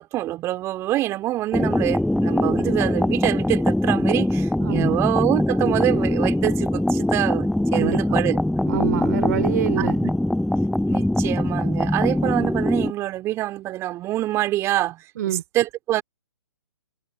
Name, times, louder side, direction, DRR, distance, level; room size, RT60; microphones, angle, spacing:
voice 1, 0.0-8.4 9.8-10.1 10.9-16.0, right 15 dB, 20° right, 3.2 m, -26 dB
sound 1, 1.5-12.9, left 1 dB, ahead, 0.4 m, -22 dB
voice 2, 4.6-4.9 7.7-8.2 8.7-10.0 15.2-15.4, right 12 dB, 40° right, 3.2 m, -26 dB
figure-of-eight pair, 130°, 15 cm